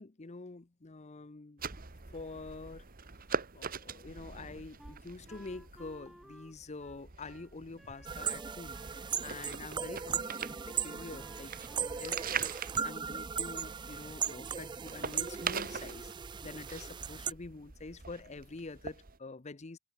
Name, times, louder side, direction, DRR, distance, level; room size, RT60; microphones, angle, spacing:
voice 1, 0.0-1.6 2.1-2.9 3.5-10.6 10.8-11.7 12.0-16.1 16.4-19.8, left 3 dB, 30° left, 0.7 m, -46 dB
Turning book pages, 1.6-19.2, right 6 dB, 40° right, 1.4 m, -43 dB
Wind instrument woodwind instrument, 4.8-9.0 9.3-9.5 9.7-12.1, equal, ahead, 6.6 m, -56 dB
sound 1, 8.0-17.3, right 7 dB, 20° right, 0.3 m, -38 dB
head